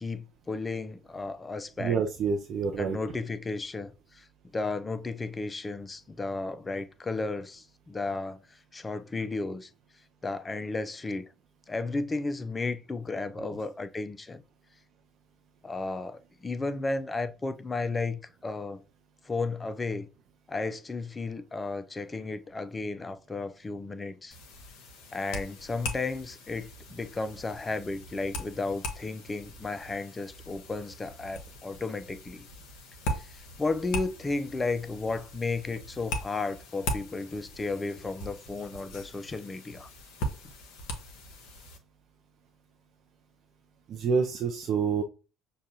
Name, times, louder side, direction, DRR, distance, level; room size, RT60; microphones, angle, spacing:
voice 1, 0.0-2.0 2.8-4.3 4.5-9.7 10.2-11.2 11.7-14.4 15.6-18.8 19.2-20.1 20.5-24.4 25.1-32.5 33.2-39.9, left 3 dB, 20° left, 0.5 m, -34 dB
voice 2, 1.8-3.0 13.4-13.6 43.9-45.0, right 5 dB, 50° right, 0.5 m, -28 dB
sound 1, 24.3-41.8, left 1 dB, 65° left, 0.8 m, -40 dB
6.4 x 2.4 x 2.7 m
figure-of-eight pair, 60°, 0 cm